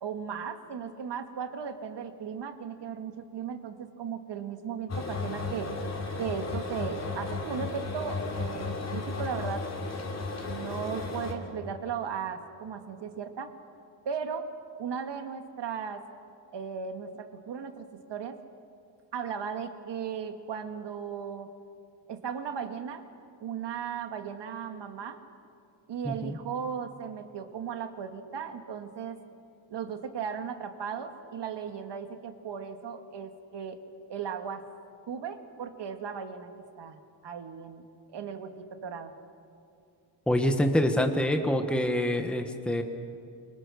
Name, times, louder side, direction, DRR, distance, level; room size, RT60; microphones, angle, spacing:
voice 1, 0.0-5.7 6.2-9.7 10.1-13.5 14.1-14.5 14.8-16.0 16.5-18.4 19.1-21.5 22.1-23.0 23.4-25.2 25.9-29.2 29.7-33.8 34.1-34.7 35.1-36.5 36.8-37.0 37.2-37.8 38.1-39.1, right 7 dB, 60° right, 7 dB, 2.1 m, -36 dB
sound 1, 4.9-11.3, left 3 dB, 30° left, 3.6 m, -34 dB
voice 2, 26.0-26.4 40.3-42.8, left 1 dB, ahead, 5 dB, 1.4 m, -26 dB
27.5 x 24.5 x 6.5 m, 2.5 s
cardioid pair, 145°, 48 cm